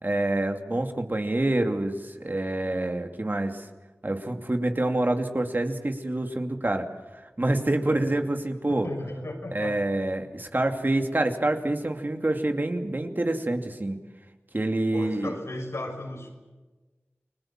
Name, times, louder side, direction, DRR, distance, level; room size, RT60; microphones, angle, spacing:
voice 1, 0.0-3.7 4.0-6.9 7.4-8.9 9.5-14.0 14.5-15.3, right 1 dB, 45° right, 4 dB, 2.6 m, -27 dB
voice 2, 8.7-9.8 14.9-16.3, left 1 dB, 90° left, 2 dB, 6.2 m, -35 dB
29.5 x 21.0 x 7.5 m, 1.2 s
wide cardioid pair, 45°, 5 cm